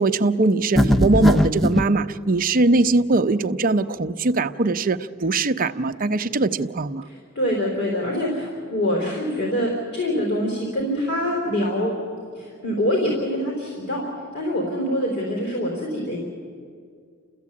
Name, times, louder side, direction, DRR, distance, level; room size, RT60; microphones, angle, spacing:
voice 1, 0.0-7.0, right 2 dB, 40° right, 8 dB, 0.7 m, -21 dB
sound 1, 0.8-1.9, equal, ahead, 0.6 m, -19 dB
voice 2, 7.0-11.9 12.3-14.0 14.3-16.2, equal, 55° left, -2 dB, 4.2 m, -25 dB
30.0 x 14.5 x 8.5 m, 2.2 s
head